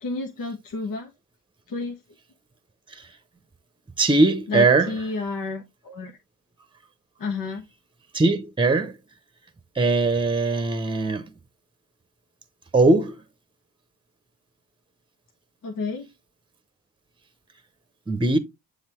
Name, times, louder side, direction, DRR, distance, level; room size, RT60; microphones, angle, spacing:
voice 1, 0.0-1.1 1.7-2.0 4.5-6.1 7.2-7.6 15.6-16.1, left 4 dB, 65° left, 1.5 m, -30 dB
voice 2, 4.0-4.9 8.1-9.0 9.7-11.3 12.7-13.2 18.1-18.4, right 3 dB, 15° right, 1.0 m, -20 dB
7.2 x 3.6 x 3.6 m
supercardioid pair, 55°, 35 cm